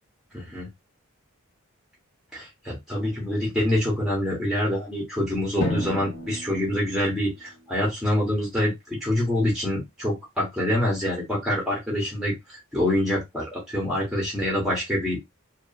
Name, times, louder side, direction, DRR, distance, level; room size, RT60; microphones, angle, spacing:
voice 1, 0.3-0.7 2.3-15.2, left 1 dB, ahead, -3 dB, 0.8 m, -26 dB
Drum, 5.6-8.1, left 1 dB, 35° left, 0.7 m, -33 dB
2.6 x 2.3 x 2.3 m, 0.19 s
head